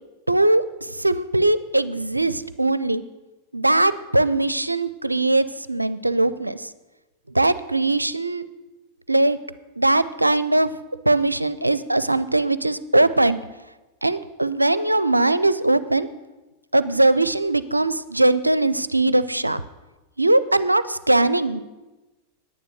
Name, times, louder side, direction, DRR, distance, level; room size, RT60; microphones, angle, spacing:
voice 1, 0.3-3.0 3.5-6.7 7.3-8.4 9.1-9.4 9.8-10.7 11.1-13.4 14.0-16.1 16.7-19.6 20.2-21.6, right 2 dB, 85° right, 15 dB, 0.4 m, -20 dB
10.0 x 9.6 x 6.8 m, 1.1 s
figure-of-eight pair, 90°, 0 cm